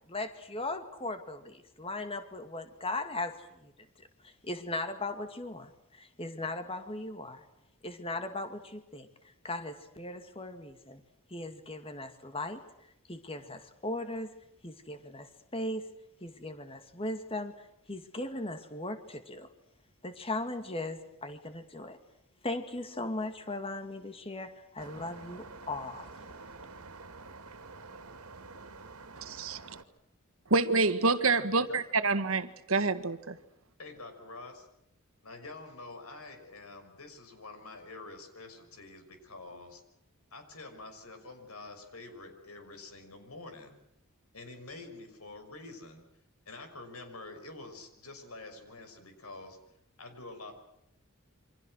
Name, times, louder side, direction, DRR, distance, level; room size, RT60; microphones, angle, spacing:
voice 1, 0.1-3.3 3.6-3.7 4.2-7.4 7.8-9.1 9.4-11.0 11.3-12.6 13.1-14.3 14.6-15.9 16.2-19.5 20.0-22.0 22.4-26.1, left 2 dB, 25° left, 2.2 m, -38 dB
sound 1, 24.8-29.8, right 3 dB, 85° right, 2.2 m, -48 dB
voice 2, 29.2-29.6 30.5-33.4, right 3 dB, 65° right, 1.7 m, -27 dB
voice 3, 33.8-34.7 35.2-39.8 40.3-43.8 44.3-46.0 46.5-49.6 50.0-50.5, left 2 dB, 80° left, 6.0 m, -47 dB
28.5 x 25.5 x 6.4 m
head